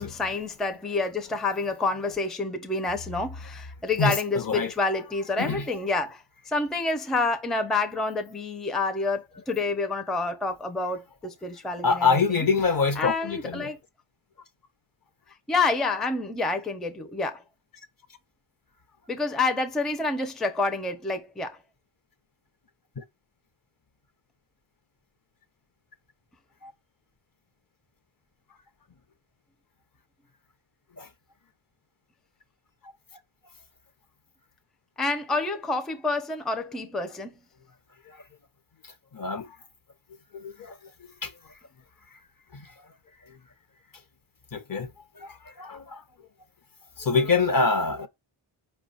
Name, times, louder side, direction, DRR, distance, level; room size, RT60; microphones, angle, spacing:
voice 1, 0.0-12.5 13.0-13.8 15.5-17.4 19.1-21.6 35.0-37.3, left 3 dB, ahead, 0.5 m, -28 dB
voice 2, 4.0-4.7 5.4-5.7 11.8-13.7 23.0-23.1 26.6-26.7 31.0-31.1 38.1-38.2 39.1-39.6 40.3-40.8 41.2-41.3 42.5-42.7 43.3-43.4 44.5-44.9 45.2-46.0 47.0-48.1, left 4 dB, 45° left, 0.7 m, -26 dB
4.8 x 2.3 x 4.0 m
wide cardioid pair, 85°, 50 cm